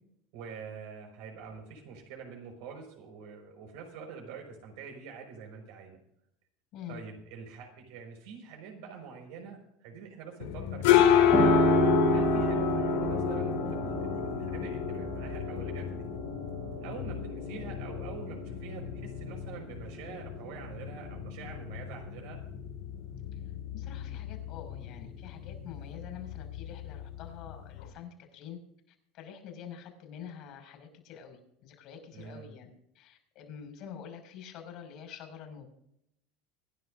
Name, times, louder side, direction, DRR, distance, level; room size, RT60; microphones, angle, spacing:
voice 1, 0.3-6.0 6.9-11.5 12.1-16.1 16.8-22.4 32.1-32.5, right 6 dB, 70° right, 2 dB, 5.4 m, -45 dB
voice 2, 6.7-7.0 23.7-28.6 28.9-32.7 32.9-35.7, left 8 dB, 60° left, 5 dB, 6.1 m, -46 dB
sound 1, 10.4-27.9, left 9 dB, 75° left, 2.2 m, -30 dB
Piano, 11.3-19.8 20.2-21.2, right 8 dB, 40° right, 4.6 m, -33 dB
25.5 x 11.0 x 2.7 m, 0.74 s
hypercardioid pair, 85°, 0 cm